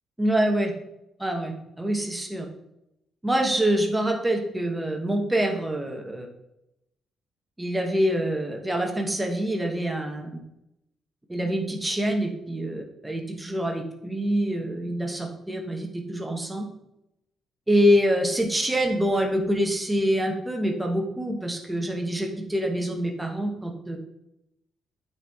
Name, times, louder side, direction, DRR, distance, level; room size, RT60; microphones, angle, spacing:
voice 1, 0.2-0.7 1.2-2.5 3.2-6.3 7.6-10.3 11.3-16.6 17.7-24.0, equal, 10° right, 2 dB, 1.1 m, -25 dB
9.2 x 4.3 x 3.5 m, 0.84 s
cardioid pair, 150°, 0 cm